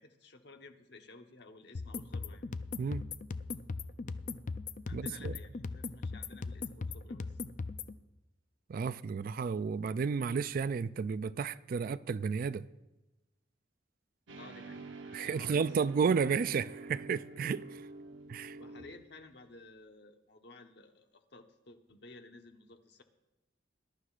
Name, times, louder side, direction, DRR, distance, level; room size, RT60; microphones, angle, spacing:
voice 1, 0.0-2.5 4.9-7.4 14.4-15.9 18.6-23.0, left 3 dB, 65° left, 1.0 m, -54 dB
sound 1, 1.7-7.9, left 4 dB, 45° left, 0.4 m, -39 dB
voice 2, 4.9-5.3 8.7-12.7 15.1-17.8 18.3-18.6, right 5 dB, 50° right, 0.3 m, -32 dB
sound 2, 14.3-19.2, right 3 dB, 90° right, 0.9 m, -47 dB
20.0 x 11.5 x 2.5 m
head